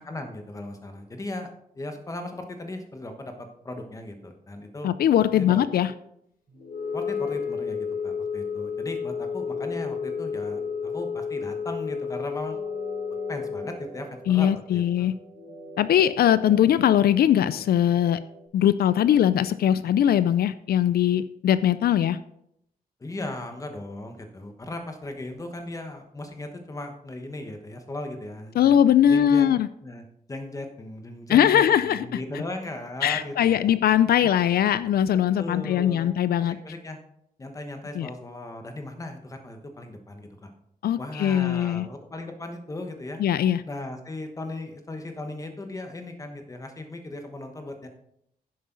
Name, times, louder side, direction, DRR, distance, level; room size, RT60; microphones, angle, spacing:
voice 1, 0.0-1.5 1.8-4.9 5.3-5.6 6.9-12.6 13.3-15.1 23.0-28.8 29.1-29.5 29.8-33.7 34.2-34.3 35.1-36.1 36.4-37.0 37.4-40.5 41.0-43.2 43.6-47.9, left 2 dB, 20° left, 5 dB, 1.2 m, -37 dB
voice 2, 4.8-5.9 14.3-15.1 15.8-18.2 18.5-22.2 28.6-29.7 31.3-32.0 33.0-36.6 38.0-38.1 40.8-41.9 43.2-43.6, left 10 dB, 85° left, 14 dB, 0.4 m, -21 dB
sound 1, 6.5-18.5, right 1 dB, 50° right, 3.7 m, -45 dB
Wind instrument woodwind instrument, 6.7-13.8, left 6 dB, 70° left, 1.3 m, -31 dB
10.5 x 7.8 x 3.9 m, 0.75 s
wide cardioid pair, 165°, 15 cm